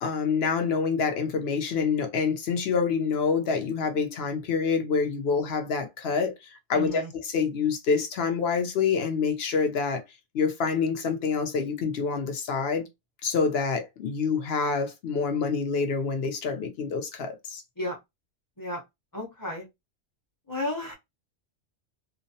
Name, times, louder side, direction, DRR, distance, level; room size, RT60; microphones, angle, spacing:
voice 1, 0.0-10.0 10.3-12.9 13.2-17.6, left 5 dB, 65° left, 0.8 m, -27 dB
voice 2, 6.7-7.1 17.8-18.0 18.6-18.8 19.1-19.6 20.5-20.9, left 1 dB, 20° left, 0.6 m, -32 dB
2.4 x 2.1 x 2.6 m
omnidirectional pair, 1.2 m